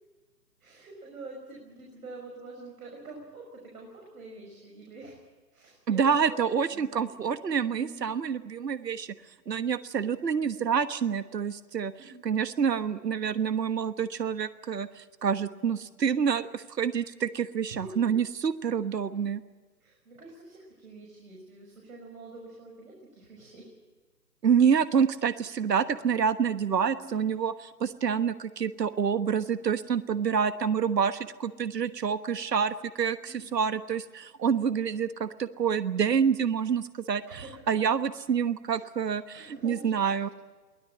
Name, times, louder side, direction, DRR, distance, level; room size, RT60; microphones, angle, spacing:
voice 1, 0.6-5.2 5.5-6.3 6.7-7.1 7.6-8.1 12.0-12.3 17.7-17.9 19.8-23.7 27.0-27.5 33.3-33.5 37.3-37.7 38.7-38.8 39.3-40.3, right 2 dB, 55° right, 0 dB, 6.1 m, -46 dB
voice 2, 5.9-9.1 9.5-11.9 12.2-19.4 24.4-27.5 27.8-40.3, right 7 dB, 75° right, 13 dB, 1.4 m, -27 dB
23.0 x 17.0 x 8.6 m, 1.3 s
hypercardioid pair, 145°, 50 cm